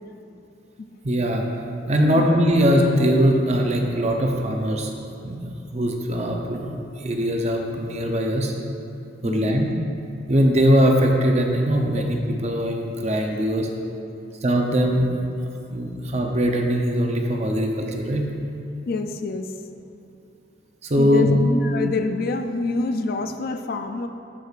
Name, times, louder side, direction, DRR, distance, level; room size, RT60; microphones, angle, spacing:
voice 1, 1.0-1.5 1.9-4.9 5.2-5.4 5.7-8.5 9.2-9.7 10.3-13.7 14.4-15.1 15.7-18.2 20.8-21.3, equal, 35° right, 2 dB, 0.6 m, -21 dB
voice 2, 9.2-9.7 12.0-12.1 18.9-19.5 21.0-24.1, left 3 dB, 50° left, 7 dB, 0.3 m, -26 dB
13.0 x 4.8 x 2.5 m, 2.7 s
head